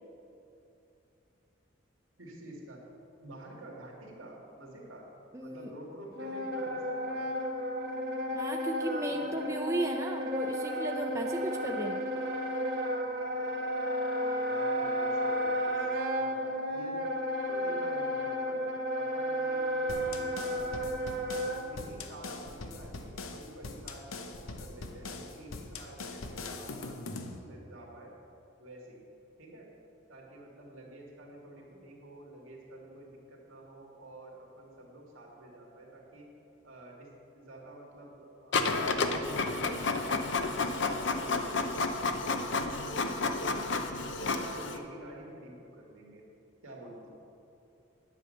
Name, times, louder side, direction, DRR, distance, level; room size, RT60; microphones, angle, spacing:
voice 1, 2.2-2.8 3.2-5.1 5.4-7.2 9.1-9.6 11.1-11.3 13.0-14.0 14.5-15.9 16.1-17.0 17.5-18.7 19.0-21.0 21.6-28.1 28.6-29.0 29.4-29.7 30.1-36.3 36.6-43.8 44.2-46.2 46.6-47.1, right 1 dB, 85° right, -1 dB, 2.3 m, -49 dB
voice 2, 5.3-5.7 8.3-12.0, right 1 dB, 15° right, 2 dB, 0.5 m, -35 dB
Wind instrument woodwind instrument, 6.1-21.6, equal, 50° right, 1.3 m, -33 dB
sound 1, 19.9-27.4, left 3 dB, 90° left, 0.9 m, -42 dB
Printer, 38.5-44.8, left 3 dB, 60° left, 0.7 m, -31 dB
9.9 x 8.4 x 6.6 m, 2.8 s
head